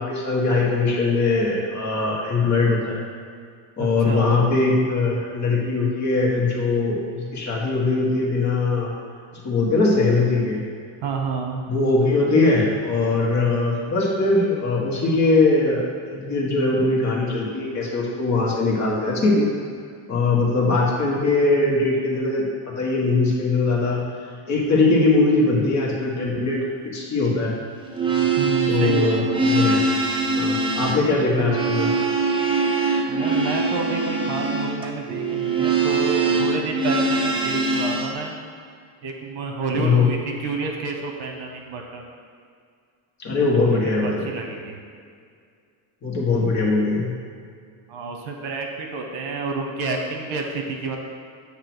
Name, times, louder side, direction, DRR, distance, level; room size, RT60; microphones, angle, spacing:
voice 1, 0.0-3.0 3.8-8.9 9.4-10.6 11.7-19.5 20.1-24.0 24.5-27.5 28.7-29.8 30.3-31.9 39.7-40.1 43.2-44.3 46.0-47.1, left 3 dB, 35° left, -3 dB, 1.4 m, -21 dB
voice 2, 3.8-4.4 11.0-11.6 28.4-29.4 33.1-38.3 39.0-42.0 43.5-44.8 47.9-51.0, right 4 dB, 65° right, 2 dB, 1.1 m, -29 dB
sound 1, 27.8-38.1, right 3 dB, 10° right, 0.5 m, -22 dB
8.1 x 2.9 x 6.0 m, 2.2 s
cardioid pair, 145°, 49 cm